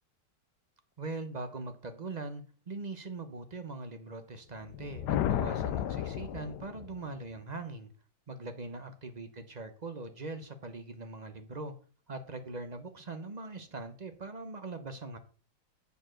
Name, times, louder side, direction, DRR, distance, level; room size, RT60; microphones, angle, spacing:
voice 1, 1.0-7.9 8.3-11.7 12.1-15.2, right 3 dB, 45° right, 8 dB, 0.5 m, -41 dB
sound 1, 4.6-7.1, left 11 dB, 75° left, 1.1 m, -33 dB
8.3 x 4.6 x 6.2 m, 0.40 s
omnidirectional pair, 1.9 m